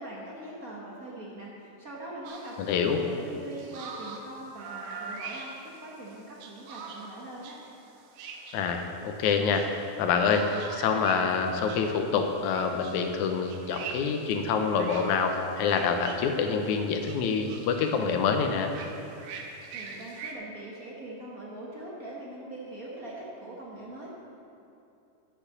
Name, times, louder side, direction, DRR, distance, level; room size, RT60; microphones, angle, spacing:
voice 1, 0.0-7.6 19.7-24.2, right 1 dB, 55° right, -4 dB, 0.9 m, -42 dB
sound 1, 2.2-20.3, right 5 dB, 90° right, 2.5 m, -44 dB
voice 2, 2.6-3.0 8.5-18.7, left 5 dB, 75° left, 5 dB, 2.1 m, -26 dB
8.6 x 8.1 x 7.2 m, 2.8 s
omnidirectional pair, 3.6 m